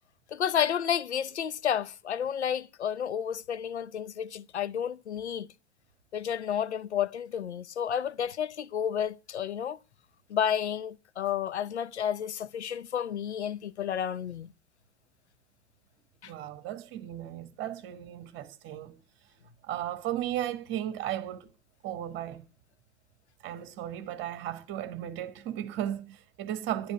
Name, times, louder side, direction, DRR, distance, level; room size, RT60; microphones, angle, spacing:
voice 1, 0.3-5.5 6.1-9.8 10.3-14.5 16.2-16.3, left 9 dB, 75° left, 0.6 m, -31 dB
voice 2, 16.2-19.0 19.6-21.5 21.8-22.5 23.4-26.9, right 12 dB, 35° right, 1.3 m, -35 dB
10.5 x 10.5 x 5.8 m
figure-of-eight pair, 90°, 34 cm